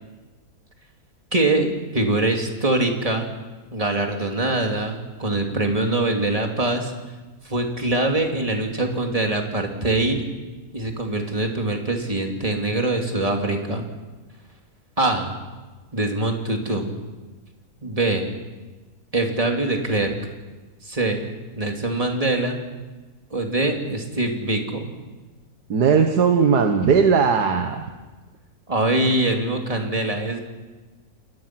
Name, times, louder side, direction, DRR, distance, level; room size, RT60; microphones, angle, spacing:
voice 1, 1.3-3.3 3.7-6.9 7.4-10.2 10.7-13.9 15.0-15.3 15.9-16.9 17.8-18.3 19.1-20.1 20.8-21.2 21.5-22.6 23.3-24.9 28.7-30.4, right 2 dB, 20° right, 2 dB, 2.8 m, -23 dB
voice 2, 25.7-27.8, right 6 dB, 85° right, 5 dB, 1.9 m, -18 dB
29.5 x 21.0 x 6.1 m, 1.2 s
omnidirectional pair, 1.7 m